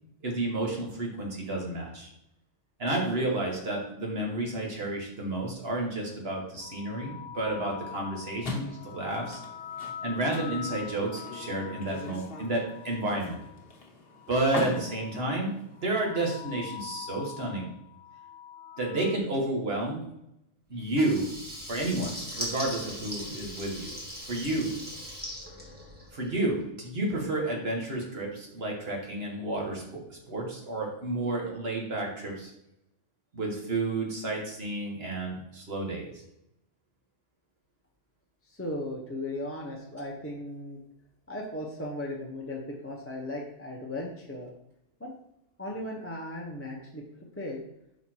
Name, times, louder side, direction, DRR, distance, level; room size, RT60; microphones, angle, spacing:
voice 1, 0.2-2.1 2.8-9.4 10.0-13.4 14.3-15.5 15.8-17.7 18.8-20.0 20.7-21.3 21.7-23.9 24.3-24.7 26.1-32.5 33.3-36.1, right 2 dB, 55° right, -1 dB, 1.7 m, -31 dB
sound 1, 6.6-13.6 14.1-15.5 15.8-19.2, left 9 dB, 80° left, 1.1 m, -44 dB
sound 2, 8.4-16.2, left 3 dB, 50° left, 1.2 m, -41 dB
Water tap faucet / Liquid, 20.9-26.4, equal, 10° right, 1.4 m, -39 dB
voice 2, 38.5-40.8 41.3-44.5 45.0-45.1 45.6-47.6, left 1 dB, 15° left, -2 dB, 0.7 m, -37 dB
5.8 x 4.1 x 4.5 m, 0.82 s
omnidirectional pair, 1.2 m